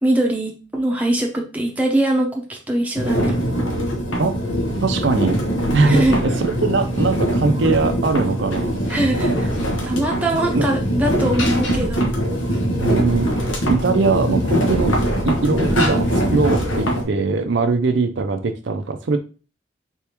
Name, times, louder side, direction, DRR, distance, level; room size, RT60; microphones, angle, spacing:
voice 1, 0.0-3.3 5.9-6.2 8.9-9.5 9.8-12.1, right 1 dB, 10° right, -1 dB, 0.7 m, -22 dB
sound 1, 3.0-17.0, equal, 85° left, 1.2 m, -22 dB
voice 2, 4.8-5.4 5.7-8.8 10.5-10.7 12.8-13.3 13.7-15.0 15.2-19.2, right 3 dB, 70° right, 7 dB, 0.5 m, -21 dB
4.4 x 3.4 x 2.9 m, 0.34 s
head